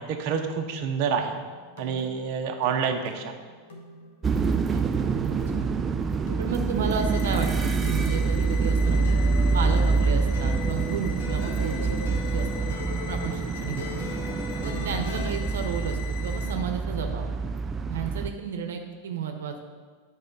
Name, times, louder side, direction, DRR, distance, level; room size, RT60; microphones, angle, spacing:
voice 1, 0.0-1.4 1.8-3.3, right 6 dB, 55° right, 3 dB, 0.8 m, -28 dB
sound 1, 1.3-15.3, left 2 dB, 85° left, 1.7 m, -39 dB
sound 2, 4.2-18.3, right 4 dB, 20° right, 0.4 m, -26 dB
voice 2, 4.7-5.7 6.4-9.2 9.5-13.9 14.6-17.3 17.9-19.6, right 6 dB, 85° right, 5 dB, 0.8 m, -33 dB
sound 3, 6.8-16.5, left 10 dB, 55° left, 1.4 m, -43 dB
8.7 x 4.3 x 5.4 m, 1.5 s
supercardioid pair, 125°, 0 cm